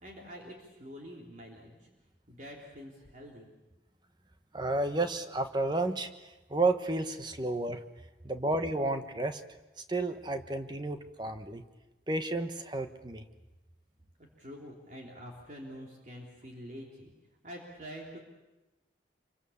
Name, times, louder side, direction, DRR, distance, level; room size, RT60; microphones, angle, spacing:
voice 1, 0.0-1.9 2.3-3.5 14.2-17.1 17.4-18.2, equal, 45° right, -1 dB, 3.4 m, -46 dB
voice 2, 4.5-7.8 8.2-9.4 9.8-11.6 12.1-13.2, right 2 dB, 25° right, 8 dB, 1.3 m, -32 dB
27.0 x 24.5 x 7.1 m, 1.1 s
head